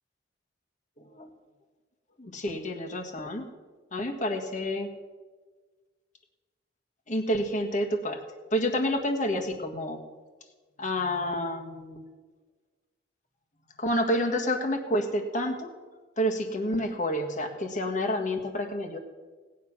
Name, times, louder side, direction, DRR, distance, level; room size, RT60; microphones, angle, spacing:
voice 1, 1.0-1.3 2.2-3.5 3.9-4.9 7.1-8.2 8.5-10.0 10.8-12.0 13.8-15.7 16.2-19.0, equal, 40° left, 3 dB, 1.7 m, -29 dB
18.0 x 9.9 x 6.0 m, 1.4 s
head